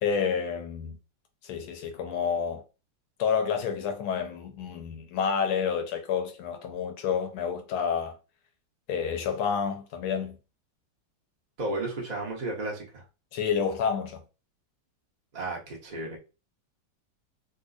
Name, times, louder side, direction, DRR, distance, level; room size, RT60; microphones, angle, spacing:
voice 1, 0.0-1.0 1.4-2.6 3.2-8.1 8.9-10.4 13.3-14.2, left 6 dB, 90° left, 1.6 m, -29 dB
voice 2, 11.6-13.0 15.3-16.2, right 2 dB, 30° right, 0.8 m, -33 dB
3.8 x 2.7 x 2.5 m
omnidirectional pair, 2.3 m